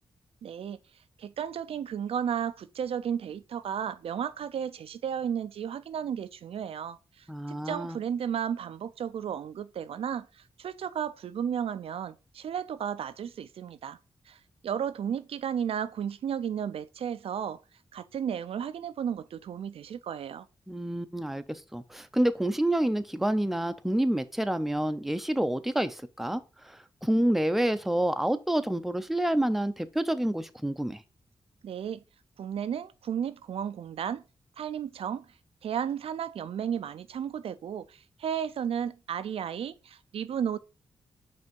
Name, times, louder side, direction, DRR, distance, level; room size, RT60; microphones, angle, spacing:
voice 1, 0.4-0.8 1.2-14.0 14.3-17.6 17.9-20.5 31.6-32.0 32.4-34.2 34.6-35.3 35.6-40.6, right 8 dB, 75° right, 0.4 m, -33 dB
voice 2, 7.3-8.0 20.7-31.0, right 1 dB, 5° right, 0.5 m, -28 dB
5.3 x 3.4 x 5.2 m
cardioid pair, 80°, 10 cm